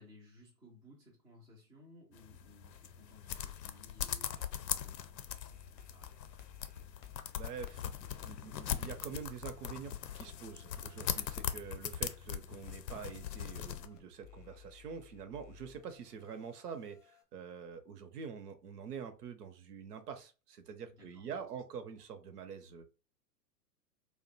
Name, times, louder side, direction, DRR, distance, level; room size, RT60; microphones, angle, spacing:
voice 1, 0.0-6.2 21.0-21.6, left 1 dB, 5° right, -3 dB, 0.4 m, -60 dB
sound 1, 2.1-13.9, left 10 dB, 80° left, 0.6 m, -41 dB
sound 2, 5.3-17.2, left 10 dB, 35° left, 0.6 m, -59 dB
voice 2, 7.4-7.8 8.2-22.8, right 7 dB, 65° right, 9 dB, 0.8 m, -46 dB
2.5 x 2.2 x 3.9 m, 0.33 s
hypercardioid pair, 110°, 50 cm